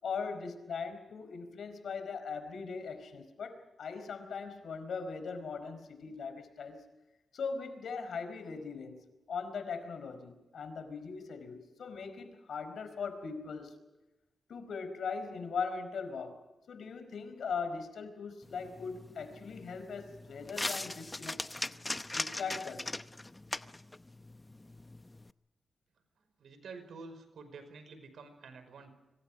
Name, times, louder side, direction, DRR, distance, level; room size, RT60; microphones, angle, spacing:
voice 1, 0.0-6.8 7.3-13.8 14.5-16.4 16.7-21.7 22.1-22.9, left 5 dB, 75° left, 9 dB, 4.6 m, -40 dB
sound 1, 18.4-25.3, left 2 dB, 20° left, 0.8 m, -40 dB
voice 2, 26.2-28.9, right 4 dB, 80° right, 9 dB, 5.3 m, -49 dB
26.0 x 25.5 x 5.1 m, 1.1 s
cardioid pair, 90°, 0 cm